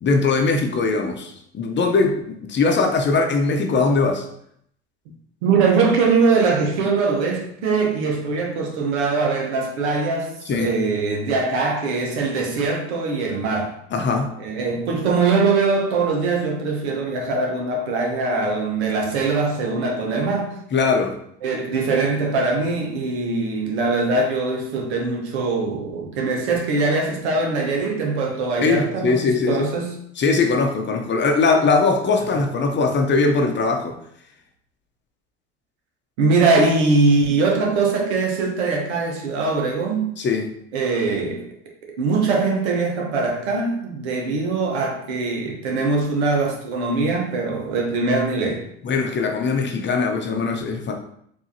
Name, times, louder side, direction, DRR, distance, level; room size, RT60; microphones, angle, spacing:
voice 1, 0.0-4.2 10.5-10.7 13.9-14.3 20.7-21.2 28.6-29.6 30.2-34.0 40.2-40.5 48.8-50.9, left 4 dB, 35° left, 4 dB, 0.7 m, -20 dB
voice 2, 5.4-13.7 14.4-20.6 21.4-29.9 36.2-40.1 40.7-41.4 42.0-48.6, right 4 dB, 80° right, 1 dB, 1.0 m, -22 dB
4.7 x 2.7 x 2.7 m, 0.70 s
hypercardioid pair, 70°, 32 cm